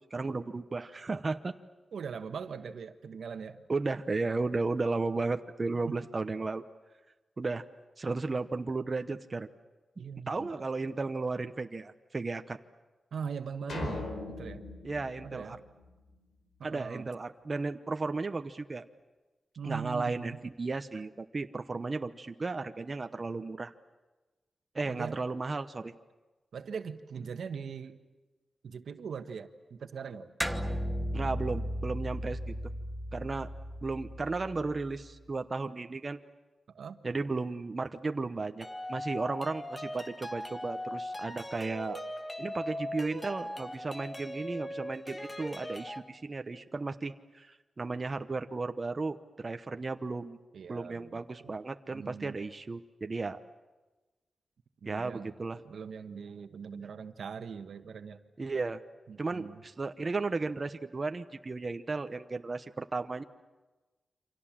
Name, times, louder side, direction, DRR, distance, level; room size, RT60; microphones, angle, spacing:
voice 1, 0.1-1.5 3.7-6.6 7.4-7.6 8.0-9.5 10.3-12.6 14.8-15.6 16.6-18.9 19.6-23.7 24.7-25.9 31.1-32.5 33.1-33.5 33.8-36.2 37.0-42.0 42.4-50.4 50.7-53.4 54.9-55.6 58.4-58.8 59.2-63.2, right 3 dB, 30° right, 8 dB, 0.9 m, -34 dB
voice 2, 1.9-3.6 5.8-6.1 10.0-10.7 13.1-14.6 15.2-15.6 16.6-17.1 19.6-20.4 24.8-25.2 26.5-28.0 28.6-30.3 36.7-37.0 50.5-51.5 51.9-52.5 54.8-55.3 55.6-58.2 59.1-59.6, right 6 dB, 80° right, 9 dB, 1.3 m, -41 dB
sound 1, 13.7-16.2, left 2 dB, 75° left, 5.0 m, -40 dB
sound 2, 30.4-35.1, equal, 5° right, 1.2 m, -36 dB
sound 3, 38.6-46.0, left 1 dB, 15° left, 1.6 m, -40 dB
28.5 x 26.0 x 7.5 m, 1.2 s
wide cardioid pair, 145°, 0 cm